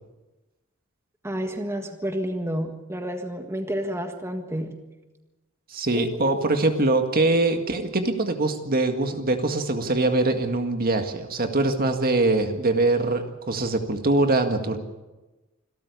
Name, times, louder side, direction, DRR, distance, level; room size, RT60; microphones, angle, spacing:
voice 1, 1.2-4.8 5.9-6.4, equal, 10° right, 5 dB, 1.6 m, -30 dB
voice 2, 5.7-14.8, right 2 dB, 45° right, 6 dB, 1.8 m, -23 dB
26.5 x 13.5 x 8.2 m, 1.1 s
head